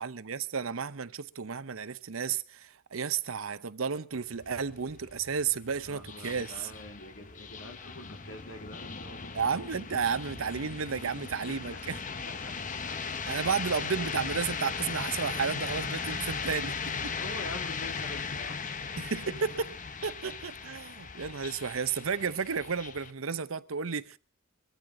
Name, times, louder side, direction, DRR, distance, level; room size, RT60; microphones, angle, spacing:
voice 1, 0.0-6.7 9.3-12.0 13.2-16.7 17.0-17.1 19.0-19.7 20.0-24.2, right 6 dB, 80° right, 0.8 m, -32 dB
sound 1, 4.1-23.1, left 5 dB, 40° left, 1.0 m, -38 dB
voice 2, 5.8-10.2 11.5-11.6 12.2-12.5 17.2-18.6, left 1 dB, 70° left, 3.0 m, -45 dB
22.5 x 13.5 x 3.8 m
head